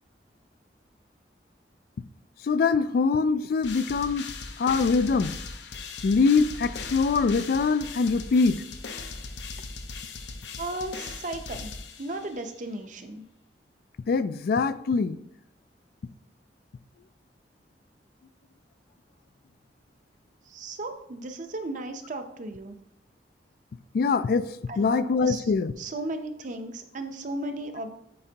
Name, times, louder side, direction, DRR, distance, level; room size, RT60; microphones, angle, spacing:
voice 1, 2.4-4.3 4.6-5.4 6.0-8.6 14.1-15.2 23.9-25.7, left 4 dB, 60° left, 13 dB, 0.3 m, -23 dB
sound 1, 3.6-12.4, left 4 dB, 80° left, 0.7 m, -39 dB
voice 2, 10.6-11.7 12.0-13.2 20.5-22.8 24.7-25.4 25.8-28.0, right 2 dB, 45° right, 7 dB, 0.7 m, -35 dB
8.5 x 4.4 x 2.8 m, 0.77 s
head